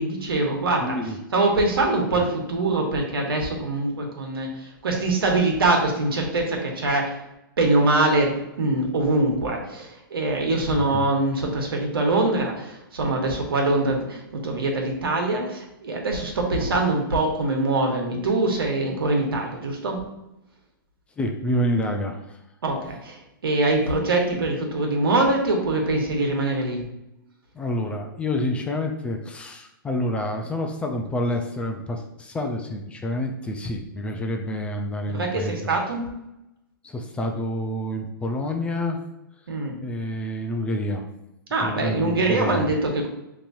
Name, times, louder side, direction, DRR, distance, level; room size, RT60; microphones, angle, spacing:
voice 1, 0.0-1.0 1.3-7.2 7.6-20.0 22.6-26.8 35.1-36.1 39.5-39.8 41.5-43.1, right 2 dB, 85° right, 1 dB, 1.3 m, -23 dB
voice 2, 0.8-1.2 2.2-2.3 10.8-11.1 21.2-22.4 27.5-35.7 36.8-39.0 39.8-41.1 41.6-42.7, left 1 dB, 10° left, 3 dB, 0.4 m, -28 dB
6.8 x 3.0 x 2.6 m, 0.89 s
hypercardioid pair, 140°, 12 cm